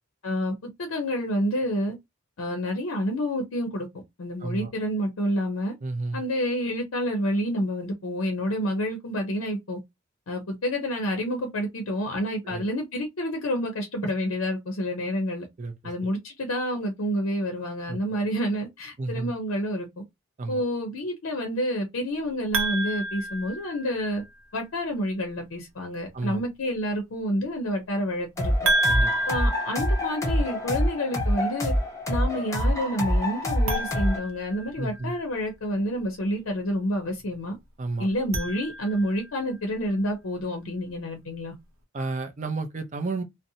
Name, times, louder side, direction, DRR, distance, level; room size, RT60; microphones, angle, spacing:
voice 1, 0.2-0.5 0.8-1.9 2.4-5.7 6.1-9.8 10.3-15.5 15.8-19.9 20.5-24.2 24.5-28.5 29.3-31.7 32.1-37.6 38.0-41.5, equal, 70° left, 0.6 m, -28 dB
voice 2, 5.8-6.2 12.4-12.6 15.6-15.9 17.9-18.2 19.0-19.3 20.4-20.6 26.1-26.4 28.9-29.1 34.8-35.2 37.8-38.1 41.9-43.2, right 3 dB, 35° right, 0.4 m, -31 dB
sound 1, 22.5-24.2 28.6-30.7 33.6-35.2 38.1-39.3, right 1 dB, 75° right, 0.7 m, -29 dB
sound 2, 28.4-34.2, equal, 15° left, 0.5 m, -26 dB
2.7 x 2.0 x 2.6 m
head